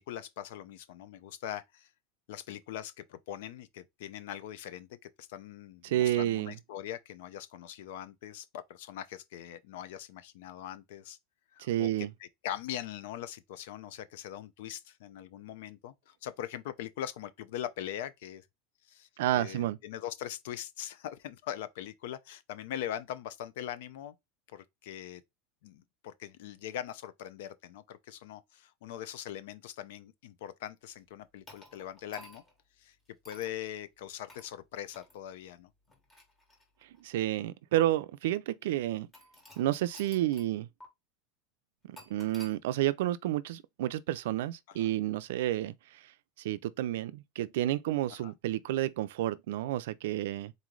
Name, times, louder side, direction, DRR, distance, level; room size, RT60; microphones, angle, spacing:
voice 1, 0.0-1.9 2.3-4.9 5.2-11.2 11.5-11.9 12.2-18.4 18.9-19.1 19.3-24.1 24.5-25.2 25.6-32.4 32.8-32.9 33.3-35.7 44.7-44.9 48.1-48.3, left 11 dB, 65° left, 0.6 m, -41 dB
voice 2, 5.8-6.6 11.6-12.1 19.2-19.8 37.0-39.1 39.6-40.7 41.9-45.7 46.4-50.5, right 14 dB, 70° right, 0.4 m, -30 dB
sound 1, 31.5-32.6 33.2-33.6 34.3-34.5 34.9-35.1 35.9-37.0 37.8-37.9 39.1-40.5 40.8-40.9 42.0-42.6, left 1 dB, 15° left, 1.4 m, -53 dB
4.0 x 3.1 x 3.7 m
supercardioid pair, 180°, 0 cm